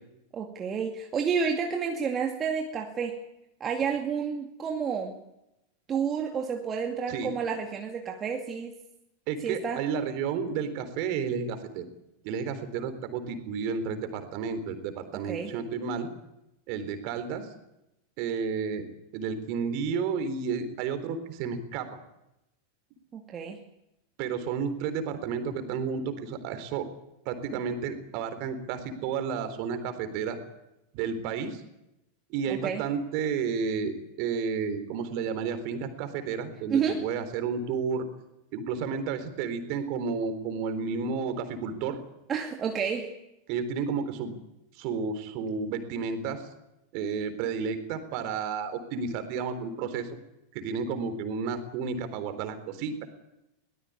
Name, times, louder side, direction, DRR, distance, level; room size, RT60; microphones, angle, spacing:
voice 1, 0.3-3.2 3.6-5.1 5.9-8.7 9.4-9.8 15.1-15.5 23.1-23.6 32.5-32.8 36.7-37.1 42.3-43.2, right 6 dB, 25° right, 2 dB, 2.4 m, -30 dB
voice 2, 9.3-11.9 12.2-16.1 16.7-17.5 18.2-18.8 19.1-21.9 24.2-26.9 27.3-30.4 30.9-31.6 32.3-38.1 38.5-42.0 43.5-44.4 44.8-46.4 46.9-50.2 50.5-53.0, right 6 dB, 50° right, 9 dB, 3.8 m, -31 dB
22.5 x 19.0 x 8.6 m, 0.88 s
figure-of-eight pair, 90°, 0 cm